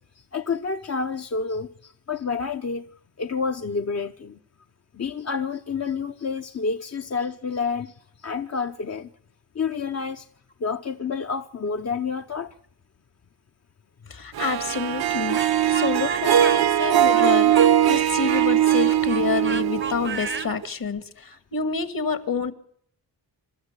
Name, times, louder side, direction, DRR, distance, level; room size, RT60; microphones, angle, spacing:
voice 1, 0.0-2.9 3.2-4.4 4.9-9.1 9.5-10.3 10.6-12.5, left 5 dB, 40° left, 0.8 m, -29 dB
voice 2, 14.1-15.4 15.7-17.6 17.9-22.5, left 5 dB, 55° left, 2.0 m, -28 dB
Harp, 14.4-20.6, right 11 dB, 60° right, 0.8 m, -21 dB
Speech, 15.4-20.5, right 5 dB, 30° right, 0.7 m, -34 dB
24.5 x 13.0 x 8.1 m
cardioid pair, 90°, 42 cm